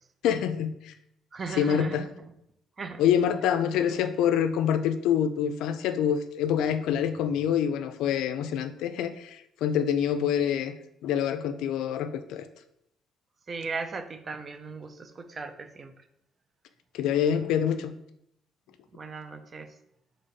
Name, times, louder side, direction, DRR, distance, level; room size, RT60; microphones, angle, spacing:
voice 1, 0.2-0.9 1.6-2.1 3.0-10.7 11.0-12.5 16.9-17.9, left 9 dB, 85° left, 10 dB, 0.3 m, -26 dB
voice 2, 1.3-2.1 2.8-3.0 13.5-15.9 18.9-19.7, right 4 dB, 35° right, 8 dB, 0.5 m, -37 dB
4.0 x 3.3 x 3.9 m, 0.78 s
cardioid pair, 115°, 0 cm